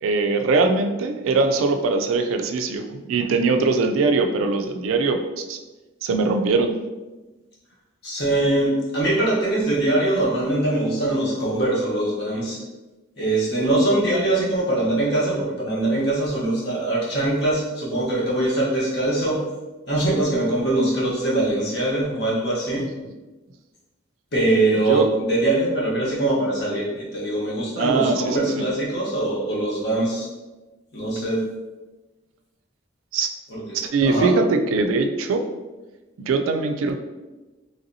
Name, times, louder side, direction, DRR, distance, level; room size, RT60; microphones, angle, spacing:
voice 1, 0.0-5.6 6.0-6.8 24.8-25.1 27.7-28.6 33.1-33.3 33.7-35.4 36.2-37.0, right 3 dB, 80° right, 6 dB, 0.3 m, -21 dB
voice 2, 8.0-12.6 13.2-19.4 19.9-22.8 24.3-30.3 30.9-31.4 33.5-33.8 34.0-34.3, right 2 dB, 55° left, -5 dB, 0.9 m, -22 dB
3.2 x 2.7 x 2.6 m, 1.2 s
head